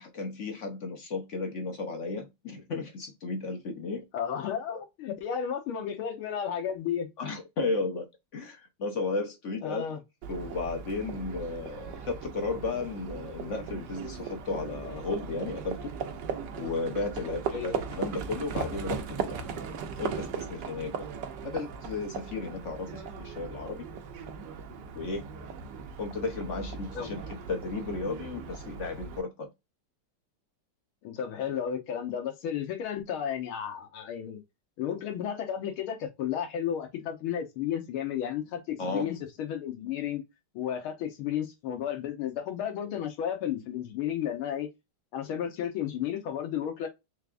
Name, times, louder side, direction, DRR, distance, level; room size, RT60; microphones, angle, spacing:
voice 1, 0.0-4.0 7.2-8.1 8.3-9.8 10.3-15.9 16.6-19.4 20.0-21.1 21.4-23.9 24.9-25.3 26.0-27.2 27.5-29.5 38.8-39.1, left 3 dB, 55° left, 0.9 m, -34 dB
voice 2, 4.1-7.1 9.6-10.0 17.2-17.8 26.9-27.2 31.0-34.4 34.8-40.2 40.6-44.7 45.1-46.9, left 9 dB, 85° left, 1.9 m, -33 dB
Livestock farm animals working animals, 10.2-29.2, right 6 dB, 65° right, 1.2 m, -38 dB
4.6 x 3.5 x 2.4 m
omnidirectional pair, 2.3 m